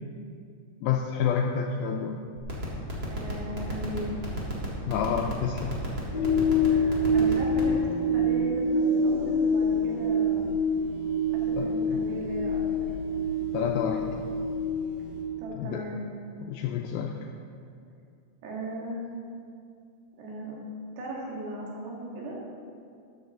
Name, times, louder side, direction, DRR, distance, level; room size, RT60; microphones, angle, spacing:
voice 1, 0.8-2.2 4.9-5.8 11.6-12.0 13.5-14.3 15.5-15.8 16.4-17.1, left 7 dB, 85° left, 2 dB, 2.1 m, -29 dB
sound 1, 2.4-7.7, right 1 dB, 35° right, 1.7 m, -31 dB
voice 2, 3.1-4.1 6.7-10.5 11.3-12.9 15.4-16.1 18.4-19.1 20.2-20.6 21.0-22.4, right 1 dB, 80° right, -3 dB, 4.2 m, -37 dB
sound 2, 6.1-15.2, left 1 dB, 40° left, 3.5 m, -26 dB
14.0 x 9.9 x 3.8 m, 2.4 s
omnidirectional pair, 4.8 m